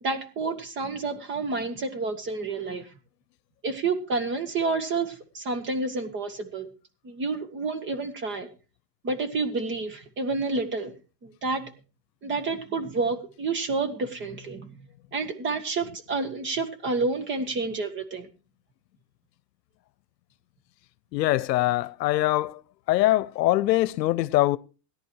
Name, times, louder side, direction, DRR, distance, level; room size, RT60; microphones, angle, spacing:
voice 1, 0.0-2.9 3.6-6.7 7.0-8.5 9.0-10.9 11.2-11.6 12.2-14.8 15.1-18.3, right 3 dB, 25° right, 1.6 m, -29 dB
voice 2, 21.1-22.6 22.9-24.6, left 16 dB, 75° left, 0.9 m, -23 dB
17.5 x 10.5 x 4.7 m
supercardioid pair, 155°, 50 cm